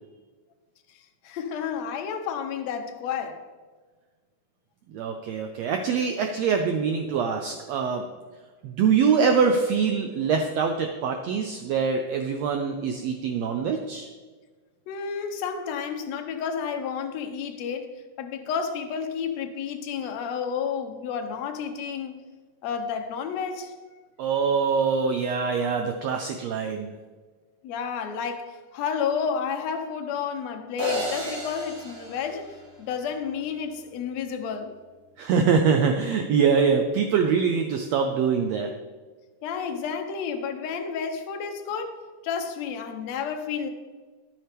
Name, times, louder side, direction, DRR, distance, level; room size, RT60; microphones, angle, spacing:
voice 1, 1.2-3.4 14.9-17.9 18.2-22.2 22.6-23.7 27.6-34.7 39.4-43.7, left 6 dB, 70° left, 6 dB, 1.7 m, -31 dB
voice 2, 4.9-8.0 8.6-14.1 24.2-26.9 35.2-38.7, right 6 dB, 90° right, 5 dB, 1.5 m, -24 dB
sound 1, 30.8-33.1, equal, 70° right, 4.1 m, -33 dB
11.0 x 8.7 x 3.4 m, 1.4 s
omnidirectional pair, 3.8 m